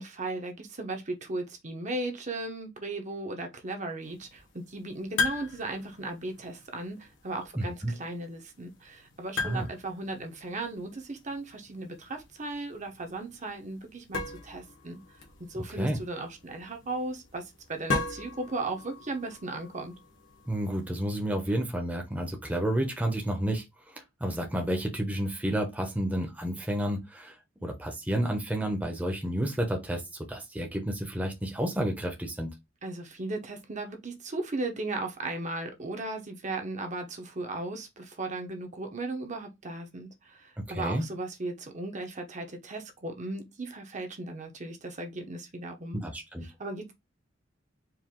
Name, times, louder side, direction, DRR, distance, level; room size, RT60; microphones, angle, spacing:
voice 1, 0.0-15.0 15.5-19.9 32.8-46.0 46.4-46.9, right 2 dB, 40° right, 1.0 m, -36 dB
sound 1, 4.0-21.1, left 4 dB, 80° left, 1.5 m, -39 dB
voice 2, 7.5-7.9 9.4-9.7 15.5-16.0 20.5-27.3 27.6-30.0 30.3-32.5 40.7-41.0 45.9-46.4, right 1 dB, 10° right, 0.8 m, -30 dB
4.7 x 2.6 x 3.7 m
head